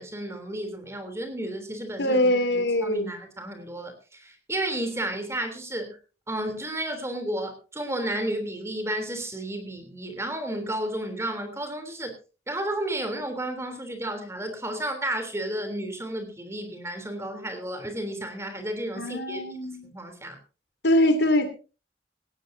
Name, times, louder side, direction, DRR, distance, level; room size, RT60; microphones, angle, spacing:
voice 1, 0.0-6.0 6.3-12.1 12.5-19.4 19.8-20.4, right 1 dB, 15° right, 6 dB, 3.3 m, -32 dB
voice 2, 2.0-3.1 19.0-19.8 20.8-21.5, left 1 dB, 80° left, 9 dB, 2.7 m, -23 dB
18.0 x 17.5 x 2.7 m, 0.34 s
head